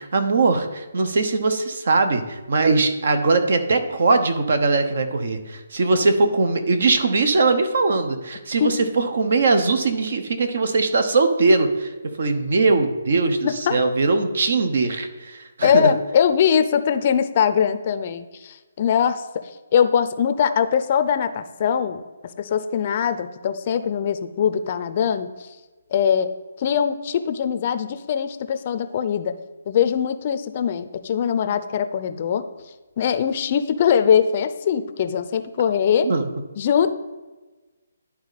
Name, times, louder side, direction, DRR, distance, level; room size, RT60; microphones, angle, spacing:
voice 1, 0.0-11.9 12.2-15.9 36.0-36.3, right 3 dB, 60° right, 8 dB, 1.0 m, -20 dB
voice 2, 13.4-13.8 15.6-19.2 19.7-22.0 22.4-25.5 25.9-26.3 26.6-29.3 29.7-32.5 33.0-36.1 36.6-36.9, left 8 dB, 40° left, 11 dB, 0.5 m, -21 dB
11.0 x 4.2 x 4.1 m, 1.2 s
hypercardioid pair, 160°, 0 cm